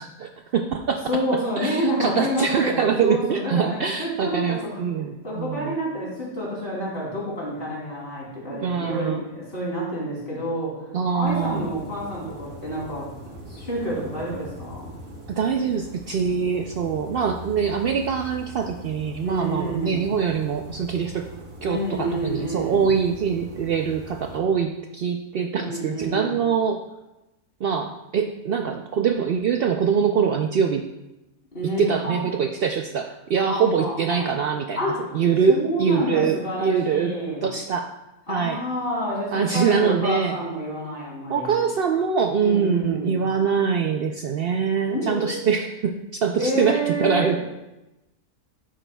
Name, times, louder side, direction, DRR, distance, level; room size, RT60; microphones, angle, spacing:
voice 1, 0.0-1.2 1.6-5.8 8.5-9.2 10.9-11.6 15.3-21.2 21.6-26.8 27.6-30.8 31.8-34.8 35.1-37.1 37.4-37.9 38.3-38.6 39.3-40.4 41.3-47.4, right 6 dB, 90° right, 4 dB, 0.5 m, -24 dB
voice 2, 1.1-4.8 5.2-10.8 11.1-14.9 19.2-20.0 21.6-22.8 25.5-26.3 31.5-32.2 33.5-34.3 34.8-35.1 35.5-37.4 38.3-41.6 42.4-43.2 44.9-45.5 46.4-47.4, equal, 40° left, -5 dB, 3.1 m, -28 dB
sound 1, 11.2-24.4, equal, 65° right, 1.7 m, -42 dB
11.0 x 8.8 x 2.3 m, 0.96 s
omnidirectional pair, 1.6 m